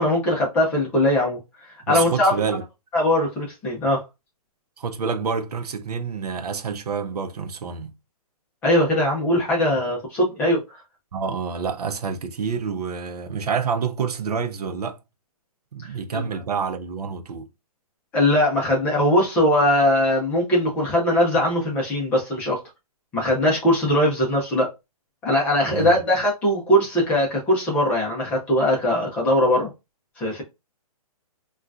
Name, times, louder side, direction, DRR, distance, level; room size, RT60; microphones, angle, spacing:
voice 1, 0.0-1.4 1.9-2.3 2.9-4.0 8.6-10.6 16.1-16.2 18.1-22.6 23.1-24.7 25.2-29.7 30.2-30.4, left 1 dB, 10° left, 0.6 m, -20 dB
voice 2, 1.9-2.6 4.8-7.9 11.1-15.0 15.7-17.5 25.7-26.0, right 6 dB, 85° right, 0.6 m, -28 dB
3.7 x 2.3 x 2.3 m
hypercardioid pair, 165°, 19 cm